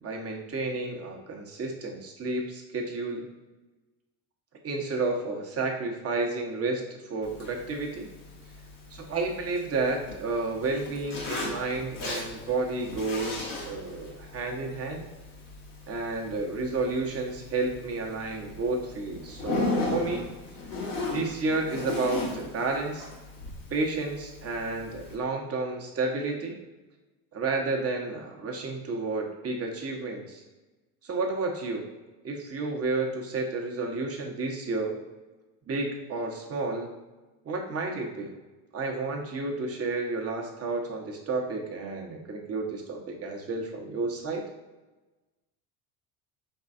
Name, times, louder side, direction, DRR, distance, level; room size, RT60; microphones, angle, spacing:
voice 1, 0.0-3.2 4.6-6.8 7.1-8.1 8.9-15.0 15.9-20.2 21.1-23.1 23.7-26.6 27.3-30.4 31.0-31.9 32.2-35.0 35.7-36.9 37.5-38.3 38.7-44.4, right 3 dB, 35° right, 1 dB, 1.0 m, -31 dB
Zipper (clothing), 7.2-25.1, left 2 dB, 80° left, 1.3 m, -37 dB
5.3 x 3.2 x 2.5 m, 1.2 s
hypercardioid pair, 75°, 44 cm